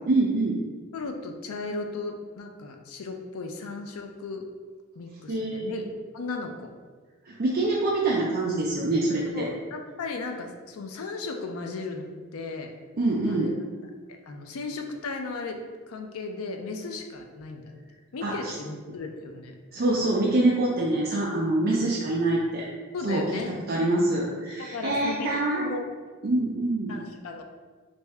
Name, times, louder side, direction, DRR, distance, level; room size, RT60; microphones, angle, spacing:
voice 1, 0.1-0.6 5.3-5.8 7.2-9.5 13.0-13.5 18.2-18.5 19.7-22.7 23.0-25.7 26.2-27.0, right 2 dB, 45° right, -4 dB, 0.4 m, -25 dB
voice 2, 0.9-4.4 5.0-5.9 6.1-6.7 9.3-12.7 13.3-13.5 14.1-17.7 18.1-19.5 22.9-23.8 24.6-25.8 26.9-27.4, left 3 dB, 80° left, 4 dB, 0.4 m, -36 dB
3.3 x 2.6 x 3.3 m, 1.5 s
head